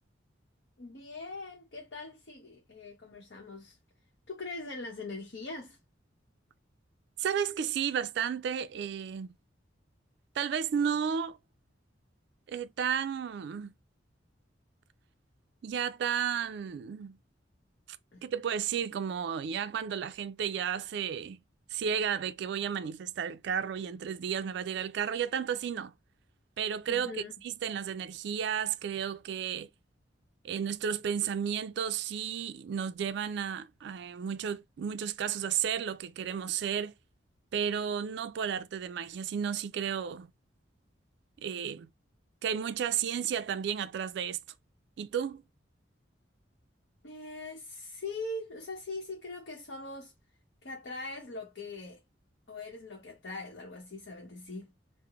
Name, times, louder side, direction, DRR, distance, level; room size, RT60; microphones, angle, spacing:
voice 1, 0.8-3.8 4.3-5.8 18.1-18.2 26.9-27.3 47.0-50.1 50.6-52.0 52.5-54.7, left 3 dB, 65° left, 0.8 m, -41 dB
voice 2, 7.2-9.3 10.4-11.4 12.5-13.7 15.6-17.2 17.9-18.0 18.2-21.4 21.7-25.9 26.6-27.1 27.4-29.7 30.4-36.9 37.5-40.3 41.4-41.9 42.4-44.4 45.0-45.4, right 8 dB, 65° right, 0.3 m, -33 dB
3.7 x 2.0 x 3.4 m
head